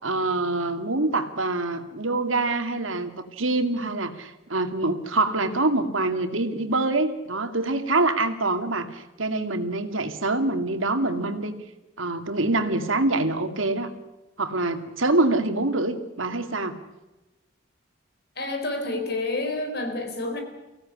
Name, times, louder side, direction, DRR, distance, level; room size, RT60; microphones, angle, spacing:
voice 1, 0.0-11.6 12.0-13.9 14.4-16.7, right 2 dB, 85° right, 7 dB, 2.4 m, -25 dB
voice 2, 18.4-20.4, left 2 dB, 50° left, 5 dB, 4.3 m, -29 dB
24.5 x 17.0 x 9.8 m, 1.0 s
head